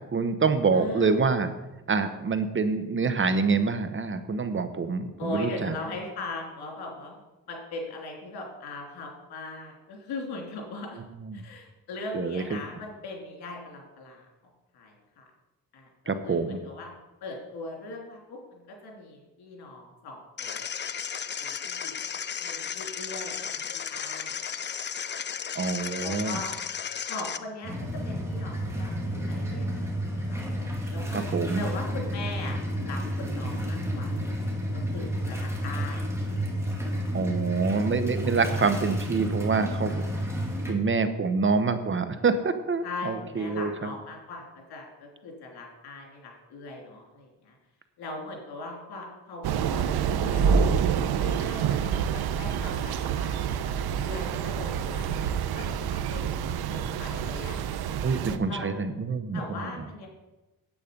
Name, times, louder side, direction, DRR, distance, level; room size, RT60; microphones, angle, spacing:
voice 1, 0.1-1.5 1.9-5.7 11.3-11.4 12.1-12.6 16.1-16.6 25.5-26.4 31.1-31.6 37.1-40.3 40.7-43.9 58.0-59.7, right 4 dB, 30° right, 10 dB, 0.9 m, -26 dB
voice 2, 0.7-1.2 5.2-7.2 7.5-11.0 11.3-14.2 14.7-15.3 15.7-16.9 17.2-20.6 21.4-21.9 22.4-24.4 26.0-26.5 27.1-27.7 28.0-30.5 30.9-31.2 31.6-32.6 32.8-34.1 34.7-36.1 42.8-47.5 48.0-49.8 50.2-56.4 56.7-57.5 58.1-58.7 59.3-60.1, left 2 dB, 90° left, 0 dB, 3.2 m, -40 dB
sound 1, 20.4-27.4, left 7 dB, 30° left, 0.5 m, -34 dB
sound 2, 27.6-40.7, equal, 5° right, 2.5 m, -31 dB
Thunder / Rain, 49.4-58.4, right 7 dB, 75° right, 0.8 m, -27 dB
9.5 x 8.4 x 5.2 m, 1.0 s
cardioid pair, 100°, 38 cm